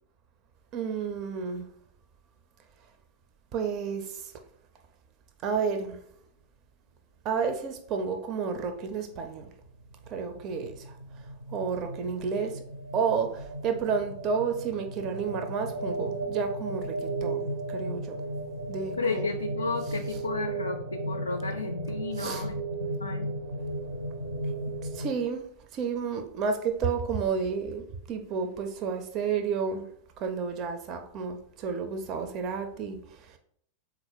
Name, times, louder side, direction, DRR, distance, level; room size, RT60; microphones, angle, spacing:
voice 1, 0.7-1.7 3.5-4.3 5.4-6.0 7.2-9.5 10.1-11.0 11.5-12.6 12.9-18.2 18.7-19.3 22.2-22.4 24.9-25.4 25.7-29.8 30.2-33.4, right 6 dB, 35° right, 0.4 m, -31 dB
sound 1, 8.8-25.1, right 2 dB, 75° right, 0.6 m, -35 dB
voice 2, 19.0-23.3, left 3 dB, 80° left, 0.3 m, -33 dB
3.8 x 2.4 x 4.6 m
figure-of-eight pair, 90°, 0 cm